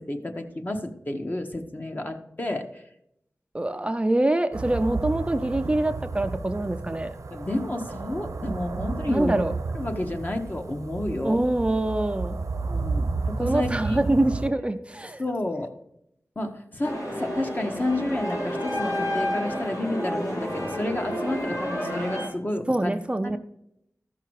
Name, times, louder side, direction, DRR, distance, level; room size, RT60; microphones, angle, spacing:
voice 1, 0.0-2.8 7.3-9.5 9.7-11.4 12.7-14.0 15.2-15.7 16.4-23.0 23.2-23.4, left 1 dB, 35° left, 4 dB, 1.1 m, -30 dB
voice 2, 3.5-7.1 9.1-9.5 11.2-12.4 13.4-15.2 22.7-23.4, right 1 dB, 20° right, 8 dB, 0.5 m, -25 dB
sound 1, 4.5-14.5, right 3 dB, 85° right, 0.9 m, -32 dB
sound 2, 16.8-22.3, equal, 85° left, 2.5 m, -30 dB
13.5 x 5.8 x 4.7 m, 0.77 s
wide cardioid pair, 85°, 5 cm